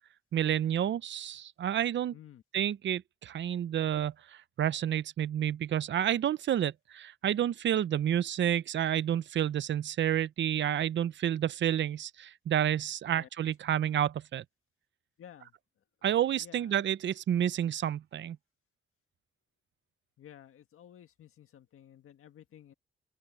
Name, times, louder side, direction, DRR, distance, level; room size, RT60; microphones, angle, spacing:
voice 1, 0.3-2.1 2.5-4.1 4.6-14.4 16.0-18.4, right 10 dB, 60° right, 0.6 m, -30 dB
voice 2, 2.1-2.4 13.1-13.3 15.2-15.5 16.4-16.8 20.2-22.7, left 10 dB, 85° left, 1.8 m, -53 dB
open air
wide cardioid pair, 125°, 21 cm